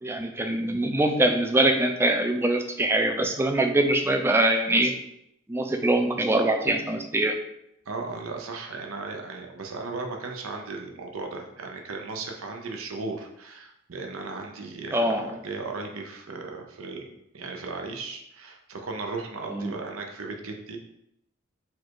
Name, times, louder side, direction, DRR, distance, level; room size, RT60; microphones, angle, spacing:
voice 1, 0.0-4.9 5.5-7.4 14.9-15.4 19.5-19.7, right 1 dB, 10° right, 5 dB, 0.3 m, -23 dB
voice 2, 7.9-17.1 17.3-20.8, right 3 dB, 85° right, 2 dB, 0.6 m, -36 dB
4.4 x 2.4 x 4.5 m, 0.79 s
head